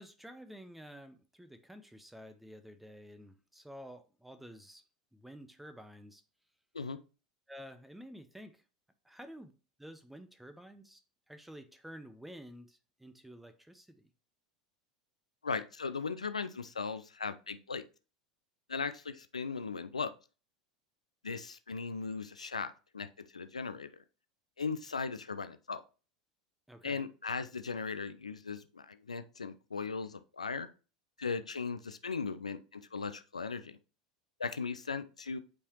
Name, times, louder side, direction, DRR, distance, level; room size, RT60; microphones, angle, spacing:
voice 1, 0.0-4.8 5.1-6.2 7.5-8.6 9.0-9.5 9.8-11.0 11.3-14.1 26.7-27.1, equal, 5° right, 0.7 m, -51 dB
voice 2, 15.4-17.8 18.7-20.1 21.2-23.1 23.3-23.9 24.6-25.8 26.8-30.7 31.2-33.8 34.4-35.4, left 5 dB, 80° left, 0.4 m, -38 dB
8.5 x 4.8 x 2.9 m
figure-of-eight pair, 80°, 3 cm